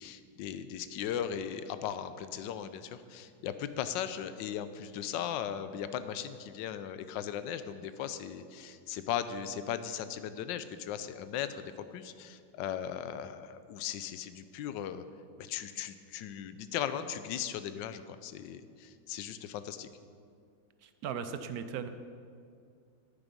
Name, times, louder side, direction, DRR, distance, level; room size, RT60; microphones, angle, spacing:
voice 1, 0.0-15.0 15.4-19.9, left 9 dB, 90° left, 11 dB, 1.3 m, -38 dB
voice 2, 20.8-21.9, right 7 dB, 70° right, 10 dB, 0.9 m, -37 dB
10.0 x 9.1 x 5.3 m, 2.3 s
omnidirectional pair, 1.9 m